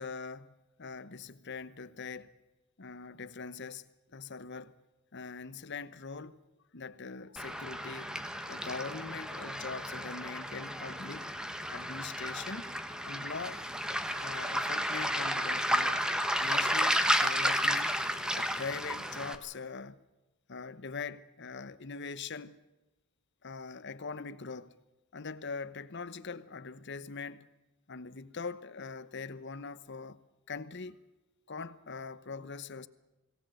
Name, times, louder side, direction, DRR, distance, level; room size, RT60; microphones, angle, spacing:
voice 1, 0.0-2.3 2.8-3.9 4.1-4.8 5.1-6.4 6.7-8.1 8.5-11.3 11.7-12.8 13.1-13.6 14.2-16.0 16.4-18.0 18.3-20.0 20.5-22.6 23.4-24.7 25.1-27.5 27.9-30.2 30.5-31.0 31.5-32.9, left 4 dB, 55° left, 0.9 m, -42 dB
Waves surf, 7.4-19.4, equal, 5° right, 1.2 m, -32 dB
22.0 x 18.0 x 7.9 m
head